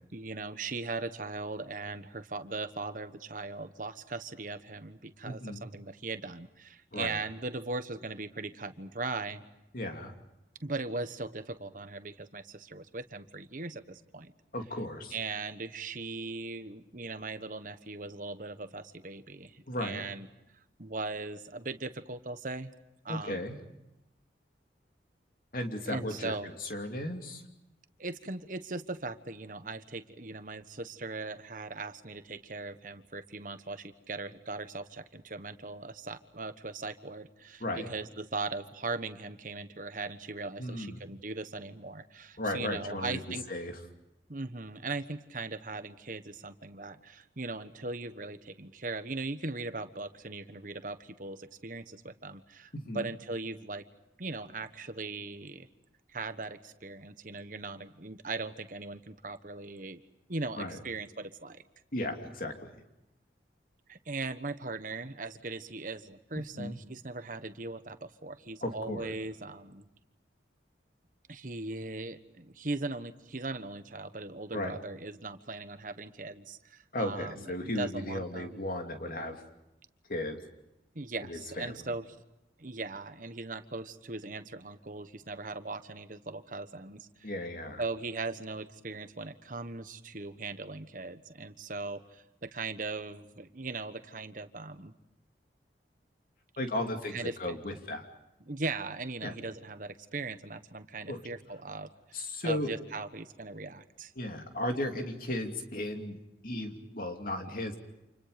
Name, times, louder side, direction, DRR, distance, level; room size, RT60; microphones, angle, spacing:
voice 1, 0.1-9.4 10.6-14.3 15.1-20.3 20.8-22.7 23.0-23.4 25.9-26.5 28.0-43.4 44.3-53.8 54.2-55.7 56.1-60.0 60.3-61.6 63.9-69.9 71.3-77.5 77.8-78.6 80.9-82.1 82.6-87.3 87.8-94.9 97.1-97.4 98.5-101.9 102.4-104.1, right 3 dB, 50° right, 10 dB, 1.3 m, -39 dB
voice 2, 5.2-5.7 6.9-7.2 9.7-10.1 14.5-15.1 19.7-20.0 23.1-23.6 25.5-26.3 26.6-27.4 37.6-37.9 40.6-41.0 42.4-43.2 43.5-43.8 52.7-53.1 60.6-60.8 61.9-62.7 66.6-66.8 68.6-69.1 74.5-74.8 76.9-79.4 80.1-80.4 81.2-81.7 87.2-87.8 96.6-98.1 99.2-99.3 101.1-101.2 102.1-102.7 104.2-107.8, left 1 dB, 50° left, 4 dB, 2.9 m, -35 dB
30.0 x 28.0 x 5.2 m, 0.91 s
head